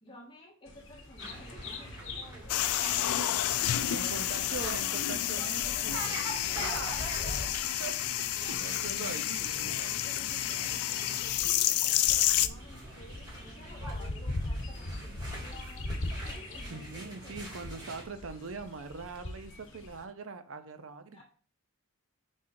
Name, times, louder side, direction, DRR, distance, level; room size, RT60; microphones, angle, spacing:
voice 1, 0.0-4.9 5.2-6.6 7.4-7.6 8.3-9.2 10.0-17.6 19.7-19.8 21.1-21.2, equal, 25° left, -2 dB, 1.6 m, -53 dB
Bird vocalization bird call bird song, 0.7-20.0, left 2 dB, 60° left, 1.0 m, -42 dB
sound 1, 1.2-18.0, right 1 dB, 20° right, 2.2 m, -45 dB
sound 2, 2.5-12.5, left 13 dB, 90° left, 0.4 m, -30 dB
voice 2, 3.9-5.9 6.6-7.0 7.8-7.9 8.5-10.0 16.7-21.2, right 4 dB, 65° right, 10 dB, 0.6 m, -42 dB
6.5 x 5.5 x 2.6 m, 0.40 s
head